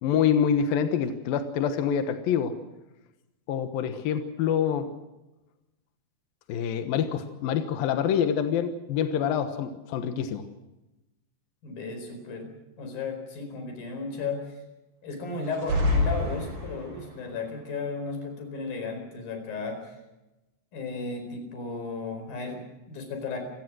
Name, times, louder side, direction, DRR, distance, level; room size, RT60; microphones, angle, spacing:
voice 1, 0.0-2.5 3.5-4.9 6.5-10.5, left 8 dB, 70° left, 7 dB, 2.3 m, -26 dB
voice 2, 11.6-12.5 12.8-14.6 15.0-20.0 20.7-23.4, left 4 dB, 45° left, 6 dB, 6.0 m, -34 dB
sound 1, 15.4-17.1, left 2 dB, 40° right, 7.6 m, -27 dB
28.0 x 18.0 x 6.3 m, 0.98 s
omnidirectional pair, 5.8 m